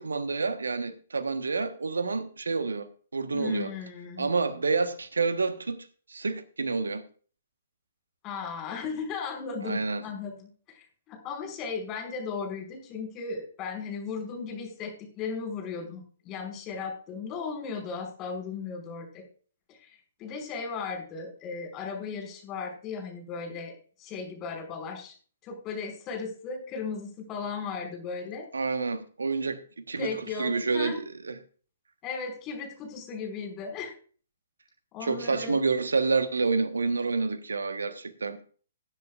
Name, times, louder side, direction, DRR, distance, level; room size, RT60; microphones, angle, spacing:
voice 1, 0.0-3.7 4.2-5.8 6.1-7.0 9.6-10.0 28.5-31.4 35.0-38.4, right 4 dB, 75° right, 1.3 m, -28 dB
voice 2, 3.3-4.3 8.2-19.2 19.7-23.7 24.0-25.1 25.4-28.5 30.0-31.0 32.0-33.9 34.9-35.6, left 5 dB, 25° left, 5.5 m, -36 dB
20.0 x 10.0 x 2.5 m
figure-of-eight pair, 125°, 0 cm